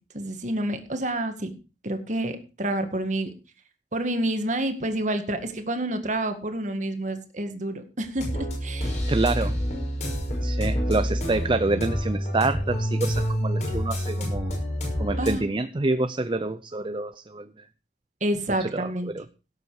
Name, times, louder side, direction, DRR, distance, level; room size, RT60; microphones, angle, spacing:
voice 1, 0.1-1.5 1.8-3.3 3.9-8.9 15.2-15.5 18.2-19.1, right 1 dB, 45° right, 7 dB, 1.9 m, -28 dB
sound 1, 8.2-15.3, equal, 40° left, 6.0 m, -27 dB
voice 2, 9.1-9.5 10.4-14.5 15.0-17.5 18.6-18.9 19.1-19.2, right 2 dB, 30° right, 11 dB, 0.6 m, -27 dB
17.0 x 8.3 x 4.9 m, 0.33 s
head